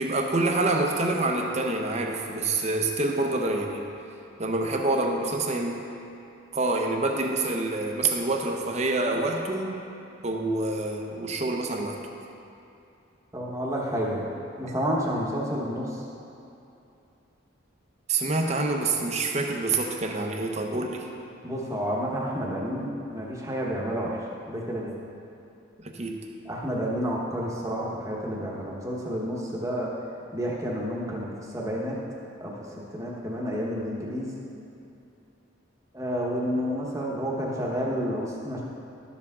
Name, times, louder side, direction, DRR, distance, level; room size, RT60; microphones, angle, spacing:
voice 1, 0.0-3.9 4.4-5.8 6.5-9.8 10.2-12.0 18.1-21.1 25.8-26.3, right 2 dB, 35° right, 2 dB, 0.7 m, -27 dB
voice 2, 13.3-14.2 14.6-15.9 21.4-24.1 24.5-24.9 26.5-29.9 30.3-31.9 32.4-32.5 32.9-34.3 35.9-38.6, equal, 15° right, -4 dB, 1.1 m, -30 dB
11.5 x 6.9 x 3.7 m, 2.7 s
head